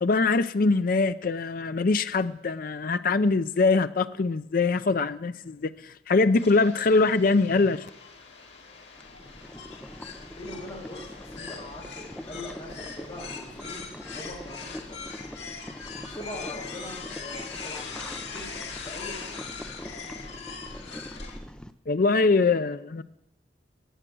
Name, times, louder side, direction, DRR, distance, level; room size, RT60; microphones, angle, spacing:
voice 1, 0.0-5.7 6.1-7.8 21.9-23.0, left 3 dB, 50° left, 12 dB, 0.5 m, -23 dB
sound 1, 6.3-21.4, left 5 dB, 85° left, 2.1 m, -41 dB
Boiling, 8.9-21.7, equal, 5° left, 0.5 m, -43 dB
voice 2, 10.3-15.0 16.2-19.4, left 1 dB, 30° left, -4 dB, 5.4 m, -42 dB
14.5 x 9.1 x 6.2 m, 0.81 s
head